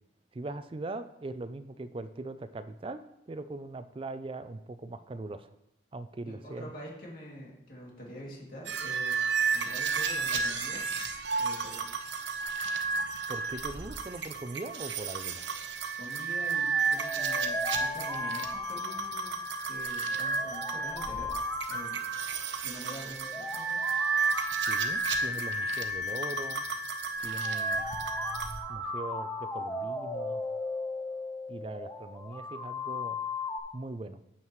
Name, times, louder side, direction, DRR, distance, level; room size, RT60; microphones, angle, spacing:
voice 1, 0.3-3.0 3.3-5.5 5.9-6.7 13.3-15.5 24.7-26.6 27.2-27.9 28.7-30.4 31.5-33.2 33.7-34.2, right 2 dB, 30° right, 12 dB, 0.4 m, -40 dB
voice 2, 6.2-10.8 11.2-11.8 16.0-19.4 19.7-21.3 21.7-22.0 22.6-23.8, equal, 50° left, -3 dB, 2.6 m, -45 dB
sound 1, 8.7-28.6, right 5 dB, 70° right, 0.8 m, -32 dB
sound 2, 16.4-33.6, left 3 dB, 15° left, 0.8 m, -37 dB
8.6 x 7.4 x 3.1 m, 0.79 s
head